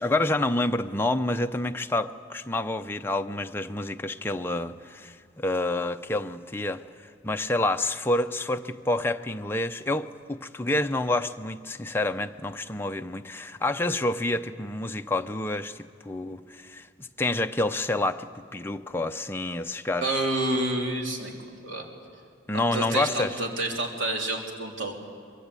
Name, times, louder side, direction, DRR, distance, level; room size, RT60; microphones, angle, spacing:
voice 1, 0.0-20.2 22.5-23.4, left 2 dB, 10° left, 0.6 m, -28 dB
voice 2, 20.0-21.9 22.5-24.9, right 2 dB, 70° right, 3.2 m, -29 dB
24.0 x 22.0 x 8.3 m
head